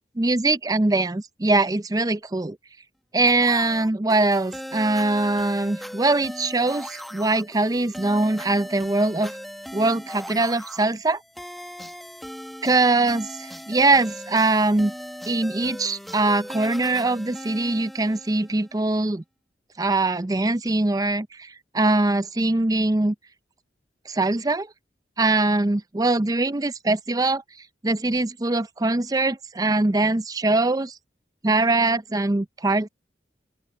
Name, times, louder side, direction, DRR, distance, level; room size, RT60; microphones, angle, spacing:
voice 1, 0.2-2.6 3.1-9.3 9.7-11.2 12.6-14.9 15.3-19.2 19.8-23.1 24.1-24.7 25.2-27.4 27.8-31.0 31.4-32.9, right 2 dB, 20° right, 0.5 m, -22 dB
sound 1, 3.3-18.7, equal, ahead, 1.4 m, -39 dB
open air
head